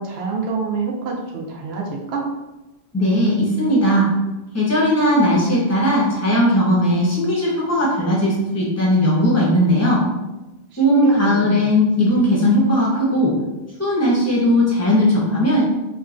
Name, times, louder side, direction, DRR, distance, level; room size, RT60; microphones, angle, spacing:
voice 1, 0.0-2.2 10.7-11.7, right 4 dB, 75° right, -1 dB, 0.9 m, -27 dB
voice 2, 2.9-4.1 4.5-10.0 10.8-13.3 13.8-15.6, equal, 15° left, -6 dB, 0.7 m, -17 dB
3.2 x 2.2 x 2.5 m, 1.1 s
omnidirectional pair, 1.1 m